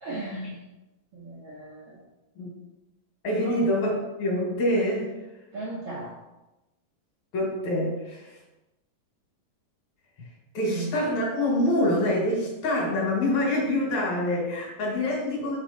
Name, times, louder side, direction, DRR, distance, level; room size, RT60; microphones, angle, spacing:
voice 1, 0.0-0.6 1.1-1.9 3.4-3.6 5.5-6.1 10.7-10.9, right 2 dB, 60° right, -6 dB, 1.6 m, -35 dB
voice 2, 3.2-5.1 7.3-8.4 10.2-10.3 10.5-15.6, left 1 dB, 60° left, -2 dB, 2.5 m, -26 dB
6.3 x 5.9 x 4.1 m, 1.0 s
omnidirectional pair, 4.1 m